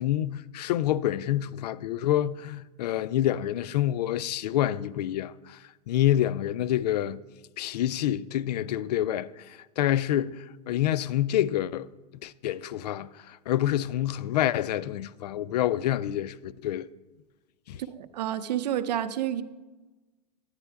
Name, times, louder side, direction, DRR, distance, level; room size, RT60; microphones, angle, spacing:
voice 1, 0.0-5.6 5.9-7.2 7.6-11.9 12.2-16.9 17.7-17.8, left 12 dB, 80° left, 0.4 m, -27 dB
voice 2, 17.8-19.4, right 11 dB, 80° right, 0.6 m, -29 dB
9.7 x 9.6 x 3.5 m
supercardioid pair, 145°, 21 cm